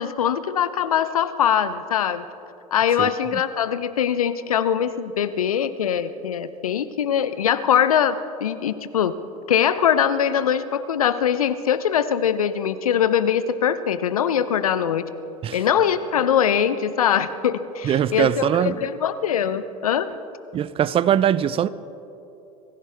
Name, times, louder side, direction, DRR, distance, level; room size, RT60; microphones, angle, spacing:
voice 1, 0.0-2.2 2.7-9.1 9.5-15.0 15.5-20.1, left 8 dB, 80° left, 0.7 m, -22 dB
voice 2, 3.0-3.4 15.4-15.6 17.8-18.9 20.5-21.7, right 10 dB, 30° right, 0.5 m, -22 dB
24.0 x 15.5 x 3.5 m
hypercardioid pair, 80°, 18 cm